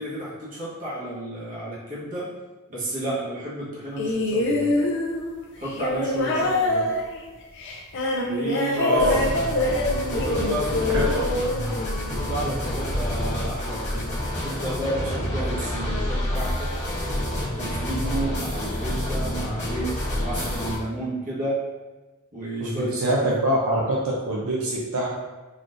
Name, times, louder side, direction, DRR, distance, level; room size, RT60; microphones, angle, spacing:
voice 1, 0.0-2.3 2.7-4.8 5.6-6.9 8.2-9.2 10.1-11.3 12.1-14.2 14.4-16.7 17.6-19.9 20.2-21.6 22.3-23.4, right 1 dB, 40° right, -7 dB, 1.1 m, -31 dB
sound 1, 4.0-12.4 13.4-13.5, left 2 dB, 60° left, 0.6 m, -25 dB
voice 2, 8.7-9.2 10.9-11.3 22.6-24.0 24.3-25.1, right 1 dB, 75° right, -4 dB, 0.6 m, -24 dB
sound 2, 9.0-20.8, left 1 dB, 35° left, 1.3 m, -28 dB
4.0 x 3.1 x 2.5 m, 1.2 s
head